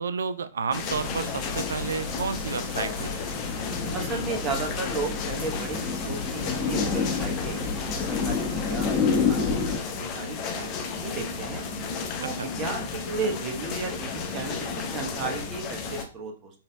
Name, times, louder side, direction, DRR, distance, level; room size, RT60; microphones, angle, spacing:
voice 1, 0.0-3.4 12.2-12.5, right 5 dB, 75° right, 13 dB, 0.3 m, -31 dB
sound 1, 0.7-16.0, left 5 dB, 35° left, 0.7 m, -33 dB
sound 2, 0.9-9.8, left 5 dB, 10° left, 1.2 m, -29 dB
voice 2, 3.9-11.6 12.2-16.5, right 4 dB, 30° right, 2 dB, 1.0 m, -35 dB
4.0 x 3.7 x 2.3 m, 0.39 s
hypercardioid pair, 115°, 0 cm